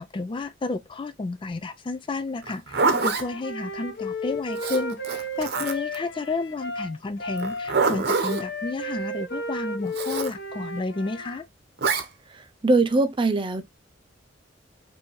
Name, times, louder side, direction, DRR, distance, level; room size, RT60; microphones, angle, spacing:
voice 1, 0.0-11.4, left 3 dB, 25° left, 0.3 m, -31 dB
Zipper (clothing), 2.4-3.3 4.6-6.0 7.4-8.4 9.9-10.3 11.8-12.1, right 4 dB, 60° right, 0.9 m, -25 dB
Wind instrument woodwind instrument, 2.9-11.4, left 1 dB, 60° left, 0.9 m, -34 dB
voice 2, 12.3-13.6, right 3 dB, 25° right, 0.5 m, -22 dB
5.4 x 2.7 x 3.1 m
head